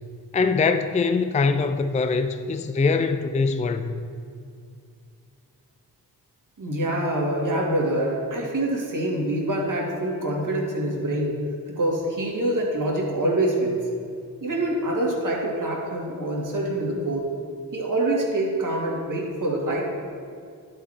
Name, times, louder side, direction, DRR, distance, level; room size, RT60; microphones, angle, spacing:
voice 1, 0.3-4.0, left 4 dB, 20° left, 9 dB, 0.4 m, -23 dB
voice 2, 6.6-11.3 11.7-13.8 14.4-17.3 17.7-19.8, right 1 dB, 50° right, -2 dB, 2.4 m, -25 dB
11.0 x 4.6 x 5.0 m, 2.3 s
cardioid pair, 50°, 41 cm